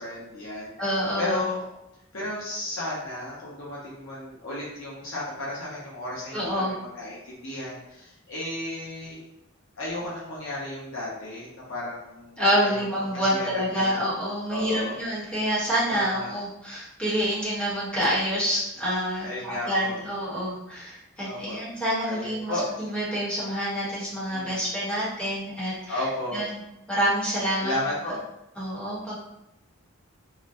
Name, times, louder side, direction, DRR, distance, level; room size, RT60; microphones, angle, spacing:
voice 1, 0.0-0.7 1.2-1.6 2.1-9.2 9.8-14.0 14.5-14.9 15.9-16.3 19.2-20.0 21.2-21.6 22.0-22.7 24.3-24.6 25.9-26.4 27.6-28.1, left 1 dB, 65° left, -6 dB, 0.8 m, -34 dB
voice 2, 0.8-1.4 6.3-6.7 12.4-26.0 26.3-26.5 26.9-27.7 28.6-29.2, equal, 5° left, -9 dB, 1.0 m, -27 dB
3.8 x 2.1 x 2.6 m, 0.86 s
head